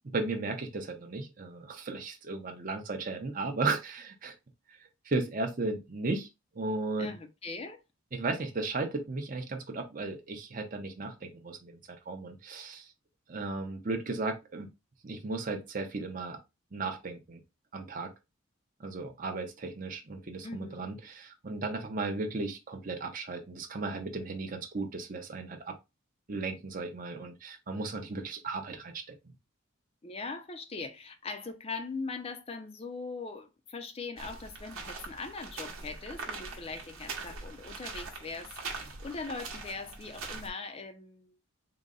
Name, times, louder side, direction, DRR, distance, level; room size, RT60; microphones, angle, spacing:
voice 1, 0.0-4.3 4.7-4.8 5.0-6.3 6.5-7.1 8.1-11.8 12.1-12.9 13.3-14.7 15.0-16.4 16.7-17.4 17.7-18.1 18.8-25.8 26.3-29.3, right 3 dB, 40° right, 0.6 m, -35 dB
voice 2, 7.0-7.8 20.4-20.9 30.0-41.3, left 4 dB, 30° left, 0.4 m, -41 dB
sound 1, 34.2-40.5, right 4 dB, 80° right, 0.9 m, -42 dB
3.8 x 2.1 x 3.7 m
head